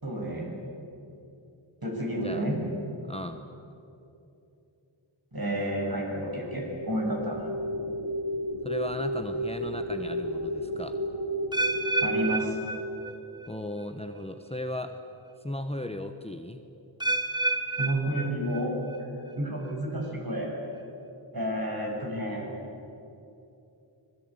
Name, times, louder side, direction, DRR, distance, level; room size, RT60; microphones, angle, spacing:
voice 1, 0.0-0.5 1.8-2.6 5.3-7.5 12.0-12.6 17.8-19.1 19.4-20.5 21.3-22.5, right 1 dB, 50° right, -1 dB, 7.8 m, -30 dB
voice 2, 3.1-3.5 8.6-11.0 13.5-15.0 15.4-16.6, left 1 dB, 15° left, 7 dB, 1.3 m, -36 dB
sound 1, 6.1-12.3, equal, 80° left, 1.7 m, -32 dB
sound 2, 11.5-13.5 13.8-14.2 14.9-15.0 17.0-19.0 19.3-19.7 20.4-20.5, right 2 dB, 10° right, 2.1 m, -31 dB
25.5 x 21.0 x 9.1 m, 2.8 s
wide cardioid pair, 55°, 47 cm